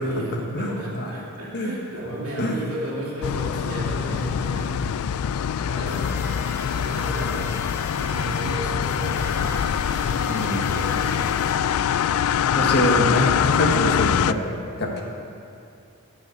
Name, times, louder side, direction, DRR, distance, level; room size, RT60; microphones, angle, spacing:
voice 1, 0.0-5.1 5.6-6.4 6.7-7.5 8.0-11.6, right 1 dB, 75° right, -5 dB, 3.0 m, -33 dB
voice 2, 0.5-1.1 1.5-1.7 2.4-2.6 10.3-10.6 12.5-14.4 14.8-15.0, equal, 50° left, 0 dB, 1.5 m, -24 dB
sound 1, 3.2-14.3, left 8 dB, 70° left, 0.3 m, -24 dB
sound 2, 5.9-11.8, equal, 10° right, 2.1 m, -40 dB
12.0 x 6.1 x 7.8 m, 2.5 s
head